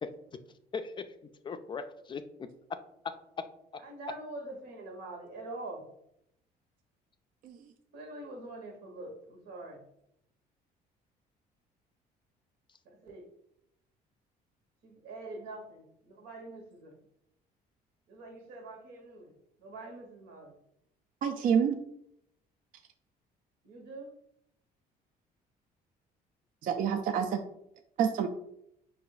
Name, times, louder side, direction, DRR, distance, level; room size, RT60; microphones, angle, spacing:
voice 1, 0.0-0.4 0.7-1.1 1.4-2.8 3.0-3.5 3.7-3.8, left 5 dB, 30° left, 9 dB, 0.3 m, -39 dB
voice 2, 3.8-5.8 7.9-9.8 12.8-13.3 14.8-16.9 18.1-19.3 19.6-20.5 23.6-24.1, right 2 dB, 90° right, 2 dB, 1.2 m, -44 dB
voice 3, 21.2-21.8 26.6-27.4 28.0-28.3, right 7 dB, 55° right, 6 dB, 0.4 m, -27 dB
4.7 x 2.5 x 3.9 m, 0.76 s
cardioid pair, 110°, 17 cm